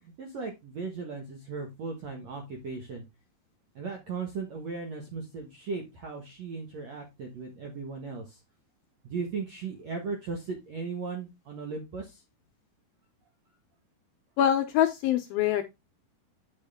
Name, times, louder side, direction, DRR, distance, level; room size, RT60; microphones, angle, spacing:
voice 1, 0.0-3.1 3.8-8.4 9.0-12.2, right 4 dB, 60° right, 1.8 m, -37 dB
voice 2, 14.4-15.6, left 10 dB, 80° left, 2.1 m, -24 dB
8.9 x 6.3 x 3.5 m
omnidirectional pair, 4.9 m